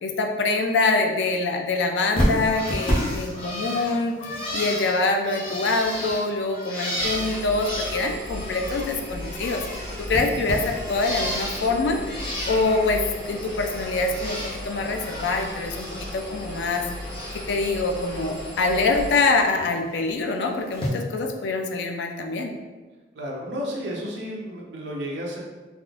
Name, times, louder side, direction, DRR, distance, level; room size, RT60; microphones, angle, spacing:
voice 1, 0.0-4.2 4.5-9.6 10.1-12.2 12.5-16.8 17.5-22.5, left 3 dB, 65° left, 4 dB, 0.4 m, -25 dB
Bird, 2.1-8.9 9.2-11.7 12.0-12.9 13.2-14.6 14.9-16.1 16.4-17.5 17.9-18.3 19.6-19.7 20.7-20.9, equal, 30° left, 0.7 m, -31 dB
Engine, 7.0-19.1, left 1 dB, 15° right, 1.4 m, -36 dB
voice 2, 23.1-25.4, equal, 70° right, -3 dB, 0.7 m, -32 dB
3.5 x 2.5 x 2.4 m, 1.3 s
head